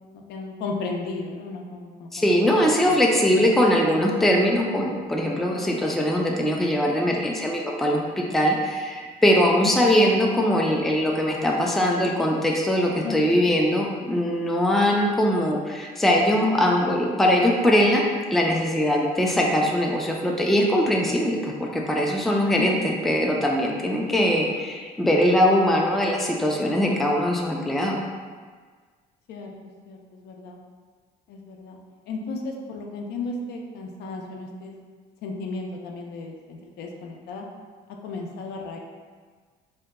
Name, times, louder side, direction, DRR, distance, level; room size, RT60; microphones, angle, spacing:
voice 1, 0.1-3.0 3.3-3.5 5.2-5.6 9.6-9.7 13.0-13.4 22.6-22.8 29.3-29.5 29.9-30.6 31.3-31.8 32.1-34.8 35.2-37.5 38.0-38.8, left 3 dB, 75° left, 1 dB, 0.5 m, -34 dB
voice 2, 2.1-18.0 18.3-28.0, equal, ahead, -1 dB, 0.3 m, -21 dB
2.8 x 2.2 x 3.5 m, 1.6 s
cardioid pair, 110°, 17 cm